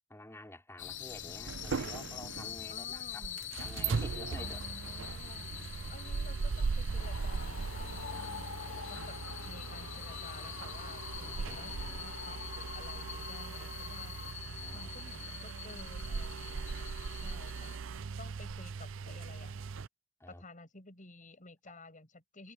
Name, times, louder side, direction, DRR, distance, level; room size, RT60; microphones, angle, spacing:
voice 1, 0.1-3.3 3.6-4.6 8.1-9.1 11.2-12.1 14.6-14.9 17.2-18.0 20.2-20.4, left 1 dB, 15° left, 5.4 m, -51 dB
sound 1, 0.8-17.8, left 10 dB, 65° left, 1.2 m, -46 dB
sound 2, 1.5-19.9, right 5 dB, 70° right, 0.5 m, -39 dB
voice 2, 2.7-3.4 4.4-5.5 5.9-9.2 9.4-14.2 14.7-17.7 18.2-19.6 20.3-22.5, left 2 dB, 40° left, 7.7 m, -53 dB
sound 3, 7.0-14.3, left 5 dB, 80° left, 0.9 m, -47 dB
head